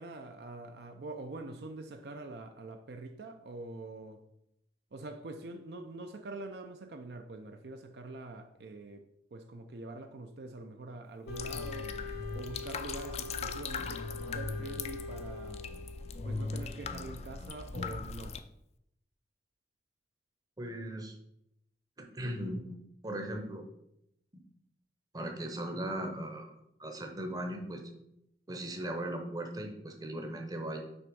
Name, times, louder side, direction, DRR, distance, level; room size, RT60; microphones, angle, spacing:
voice 1, 0.0-4.2 4.9-15.6 16.2-18.4, right 2 dB, 60° right, 0.5 m, -45 dB
Wind instrument woodwind instrument, 11.3-16.4, left 3 dB, 55° left, 0.7 m, -44 dB
sound 1, 11.3-18.4, left 4 dB, 35° left, 0.3 m, -39 dB
voice 2, 20.6-21.2 22.0-22.6 23.0-23.7 25.1-26.5 26.8-27.8 28.5-30.8, right 1 dB, 20° right, 0.7 m, -38 dB
6.0 x 3.4 x 5.3 m
head